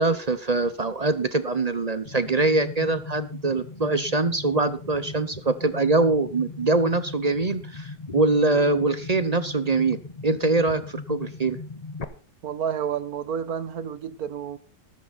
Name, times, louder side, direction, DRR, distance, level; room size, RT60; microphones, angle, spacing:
voice 1, 0.0-10.0 10.2-11.6, right 3 dB, 35° right, 0.7 m, -23 dB
sound 1, 2.0-12.0, left 3 dB, 30° left, 1.0 m, -38 dB
voice 2, 12.4-14.6, right 8 dB, 70° right, 1.5 m, -30 dB
13.5 x 13.0 x 4.1 m
omnidirectional pair, 1.7 m